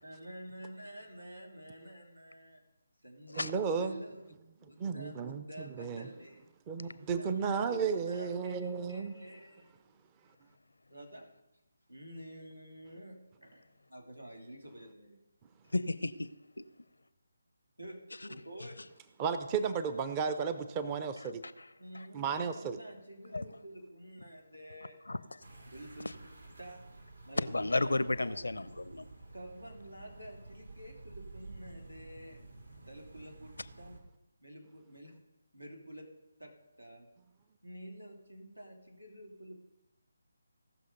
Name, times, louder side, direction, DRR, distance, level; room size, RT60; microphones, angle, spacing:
voice 1, 0.0-2.6 3.0-3.5 3.8-4.3 4.6-6.5 6.8-9.7 10.9-11.3 11.9-15.2 17.8-18.8 21.8-25.0 25.7-26.1 26.6-26.8 27.3-28.4 29.3-32.4 32.9-34.0 34.4-35.2 35.5-36.1 36.4-37.1 37.6-39.5, equal, 90° right, 3.1 m, -49 dB
voice 2, 3.4-4.0 4.8-5.4 5.8-6.1 6.7-9.2 19.2-21.4 22.1-22.8, right 6 dB, 20° right, 0.6 m, -33 dB
voice 3, 15.7-16.3 16.6-16.7 21.6-21.7 23.3-23.4 25.1-25.4 27.4-29.1, left 2 dB, 70° left, 0.6 m, -32 dB
sound 1, 25.4-34.0, right 2 dB, 70° right, 2.1 m, -52 dB
17.0 x 6.3 x 5.3 m
figure-of-eight pair, 150°, 0 cm